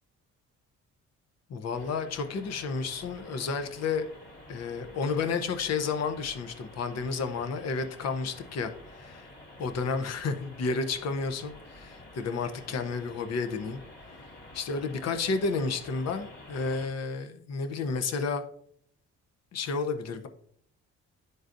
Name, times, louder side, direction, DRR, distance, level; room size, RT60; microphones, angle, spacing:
voice 1, 1.5-4.1 4.5-9.3 9.6-13.8 14.5-18.4 19.5-20.3, left 4 dB, 55° left, 8 dB, 0.8 m, -31 dB
sound 1, 1.7-16.9, left 2 dB, 30° left, 2.5 m, -49 dB
10.5 x 3.9 x 2.6 m, 0.64 s
cardioid pair, 90°, 30 cm